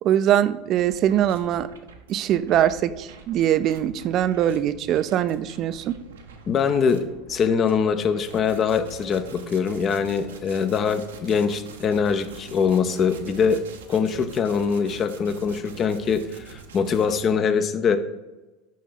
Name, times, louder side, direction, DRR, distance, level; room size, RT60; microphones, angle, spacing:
voice 1, 0.0-1.7 2.1-5.9, right 11 dB, 45° right, 14 dB, 0.4 m, -22 dB
sound 1, 0.7-17.3, right 5 dB, 75° right, 0.7 m, -45 dB
voice 2, 6.5-13.6 13.9-18.0, left 6 dB, 35° left, 10 dB, 0.7 m, -23 dB
6.3 x 5.5 x 3.9 m, 1.1 s
figure-of-eight pair, 75°, 0 cm